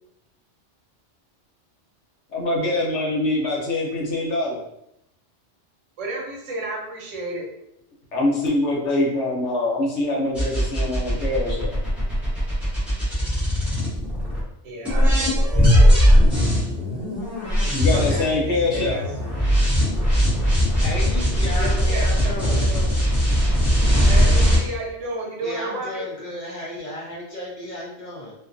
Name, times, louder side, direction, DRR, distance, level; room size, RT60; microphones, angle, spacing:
voice 1, 2.3-4.6 8.1-11.8 17.7-19.0, left 2 dB, 75° left, -3 dB, 1.1 m, -24 dB
voice 2, 6.0-7.5 14.6-15.9 17.8-19.0 21.6-22.9 24.1-26.1, right 2 dB, 90° right, -1 dB, 1.0 m, -32 dB
sound 1, 10.3-14.4 14.8-24.6, equal, ahead, 0.6 m, -19 dB
voice 3, 20.8-22.7 25.4-28.3, left 1 dB, 55° left, -5 dB, 0.5 m, -33 dB
2.4 x 2.3 x 2.4 m, 0.80 s
omnidirectional pair, 1.2 m